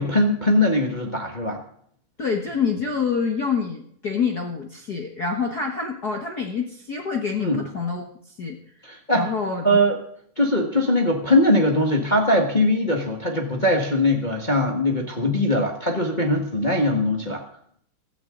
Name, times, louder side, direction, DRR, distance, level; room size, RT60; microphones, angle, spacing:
voice 1, 0.0-1.6 7.4-7.6 8.8-9.3 9.6-10.0 10.4-17.4, left 1 dB, 30° left, 2 dB, 0.8 m, -21 dB
voice 2, 2.2-8.1 8.4-8.6 9.1-9.8, left 5 dB, 60° left, 3 dB, 1.0 m, -26 dB
16.5 x 14.0 x 3.9 m, 0.63 s
omnidirectional pair, 3.8 m